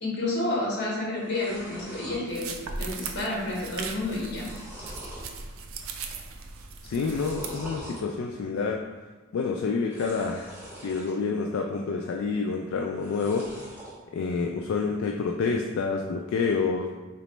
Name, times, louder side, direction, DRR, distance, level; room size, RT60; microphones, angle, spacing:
voice 1, 0.0-4.5, left 2 dB, 55° left, -4 dB, 1.3 m, -30 dB
sound 1, 0.7-0.8 1.0-2.2 2.7-3.1 3.4-3.5 4.0-5.3 5.8-6.2 7.0-8.0 9.8-11.2 11.6-12.2 12.9-14.0, right 1 dB, 10° right, 0.9 m, -44 dB
sound 2, 2.3-7.5, right 4 dB, 80° right, 0.4 m, -38 dB
voice 2, 6.8-8.8 9.3-10.5 10.8-13.5 14.1-16.9, left 4 dB, 75° left, 1 dB, 0.3 m, -28 dB
4.0 x 3.0 x 3.2 m, 1.3 s
head